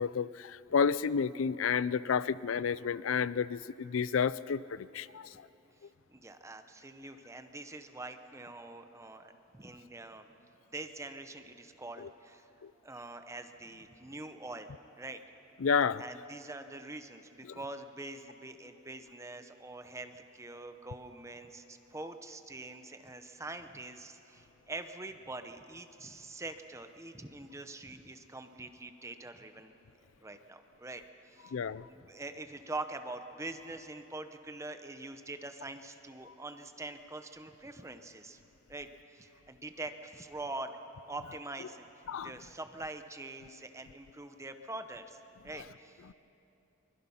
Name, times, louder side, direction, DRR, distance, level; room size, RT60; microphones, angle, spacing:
voice 1, 0.0-5.5 12.0-12.1 12.6-12.7 15.6-16.0 17.5-17.6 31.5-31.9 36.3-36.4 42.1-42.3 46.1-46.2, left 6 dB, 80° left, 18 dB, 0.5 m, -31 dB
voice 2, 6.1-10.3 10.7-12.5 12.8-14.7 15.0-15.2 16.0-29.7 30.2-31.5 31.9-38.4 38.7-40.7 41.0-41.9 42.2-45.2 45.4-46.0, right 2 dB, 15° right, 8 dB, 0.9 m, -44 dB
24.0 x 21.5 x 5.7 m, 2.9 s
head